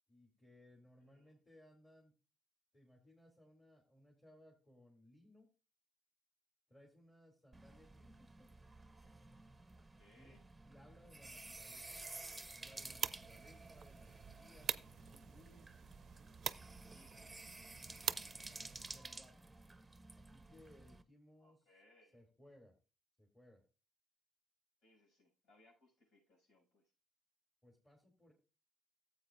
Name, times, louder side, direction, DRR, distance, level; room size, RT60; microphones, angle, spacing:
voice 1, 0.1-2.1 2.7-5.5 6.7-8.5 10.1-10.3 10.6-11.9 12.5-15.7 18.0-18.6 18.9-19.5 20.1-21.6 22.1-22.7 23.2-23.6 27.6-28.3, left 1 dB, 20° left, -1 dB, 2.7 m, -64 dB
voice 2, 1.0-1.3 9.7-10.4 14.6-15.0 16.9-17.3 21.4-22.2 24.8-26.8, left 2 dB, 85° left, -1 dB, 6.6 m, -70 dB
sound 1, 7.5-21.0, right 2 dB, 15° right, 0.7 m, -53 dB
sound 2, 12.6-19.0, right 8 dB, 55° right, 0.4 m, -45 dB
14.5 x 8.1 x 2.5 m, 0.32 s
cardioid pair, 90°, 0 cm